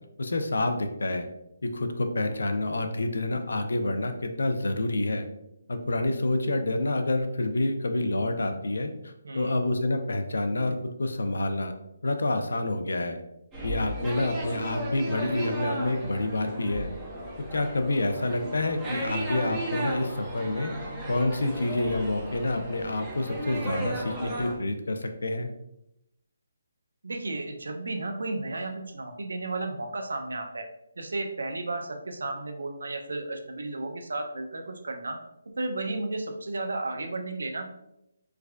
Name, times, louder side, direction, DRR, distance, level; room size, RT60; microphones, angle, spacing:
voice 1, 0.2-1.3 1.6-5.3 5.7-11.7 12.0-13.2 13.6-16.9 17.5-20.7 21.1-25.5, left 2 dB, 85° left, 7 dB, 0.5 m, -28 dB
voice 2, 9.2-9.6 27.0-30.7 31.0-35.2 35.6-37.7, right 2 dB, 90° right, 5 dB, 0.6 m, -33 dB
sound 1, 13.5-24.6, right 1 dB, 10° right, 0.6 m, -35 dB
4.7 x 2.4 x 2.3 m, 0.84 s
hypercardioid pair, 175°, 0 cm